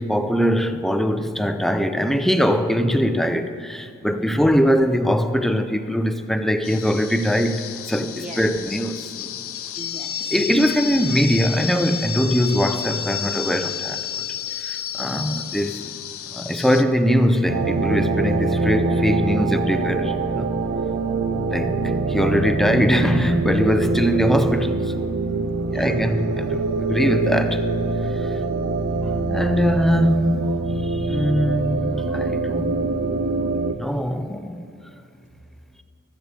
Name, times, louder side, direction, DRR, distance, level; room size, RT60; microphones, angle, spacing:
voice 1, 0.0-9.3 10.3-14.0 14.6-15.9 16.3-20.5 21.5-25.2 25.7-26.6 26.9-27.7 28.1-28.4 29.3-30.5 30.8-32.8 33.8-34.7, equal, ahead, 0.5 m, -22 dB
voice 2, 4.1-4.5 8.2-8.5 9.8-10.3 25.5-26.2 28.3-28.9, right 2 dB, 35° right, 1.1 m, -39 dB
sound 1, 6.6-16.8, left 10 dB, 85° left, 0.6 m, -31 dB
sound 2, 17.5-33.7, right 2 dB, 85° right, 0.7 m, -23 dB
15.0 x 14.0 x 3.3 m
head